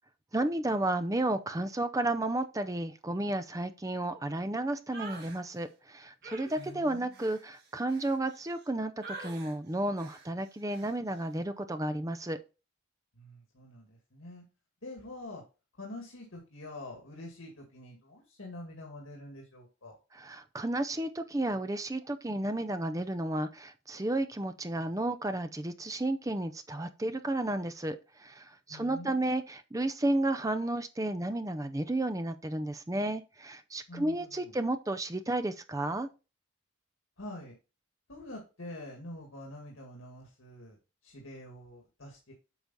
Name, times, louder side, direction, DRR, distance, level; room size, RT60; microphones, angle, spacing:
voice 1, 0.3-12.4 20.2-36.1, right 1 dB, 15° right, 0.5 m, -32 dB
sound 1, 4.9-5.4 6.2-8.7 9.0-9.6 10.0-10.3 10.7-11.0, right 3 dB, 50° right, 1.8 m, -46 dB
voice 2, 6.5-7.2 13.1-14.5 14.8-15.4 15.7-20.0 28.7-29.3 33.9-34.6 37.2-37.6 38.1-42.3, left 1 dB, 85° left, 1.8 m, -46 dB
8.2 x 4.9 x 4.0 m
head